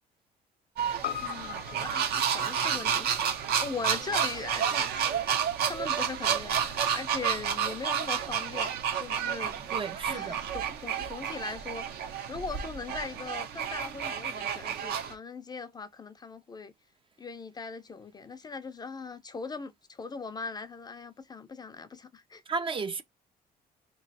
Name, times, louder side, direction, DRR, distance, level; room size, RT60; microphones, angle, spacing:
sound 1, 0.8-15.1, right 8 dB, 70° right, 0.8 m, -30 dB
Piano, 1.0-5.5 5.8-5.9, left 11 dB, 70° left, 0.6 m, -42 dB
voice 1, 1.2-3.3 3.6-9.7 10.0-16.7 17.2-22.4, left 4 dB, 25° left, 0.5 m, -40 dB
voice 2, 9.7-10.4 22.5-23.0, right 5 dB, 30° right, 0.5 m, -33 dB
3.0 x 2.8 x 4.0 m
cardioid pair, 110°, 17 cm